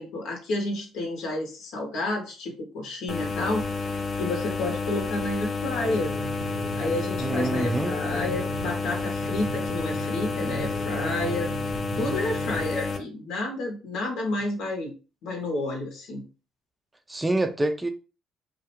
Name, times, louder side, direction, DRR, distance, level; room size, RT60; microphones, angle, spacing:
voice 1, 0.0-3.6 4.2-6.1 6.8-11.5 11.9-14.9 15.2-16.2, left 2 dB, 75° left, 0.8 m, -30 dB
sound 1, 3.1-13.0, left 4 dB, 40° left, 0.6 m, -30 dB
sound 2, 5.8-12.7, right 6 dB, 75° right, 0.8 m, -38 dB
voice 2, 7.2-7.9 17.1-17.9, right 2 dB, 15° right, 0.4 m, -26 dB
2.3 x 2.1 x 2.9 m
supercardioid pair, 75°, 0 cm